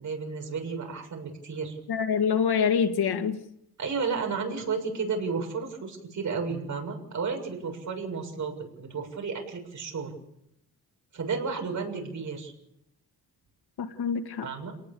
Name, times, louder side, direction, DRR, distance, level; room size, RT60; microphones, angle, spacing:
voice 1, 0.0-1.8 3.8-10.2 11.1-12.5 14.4-14.7, right 5 dB, 50° right, 3 dB, 7.1 m, -32 dB
voice 2, 1.9-3.4 13.8-14.5, left 7 dB, 80° left, 6 dB, 2.2 m, -25 dB
29.0 x 19.5 x 7.1 m, 0.80 s
wide cardioid pair, 165°, 38 cm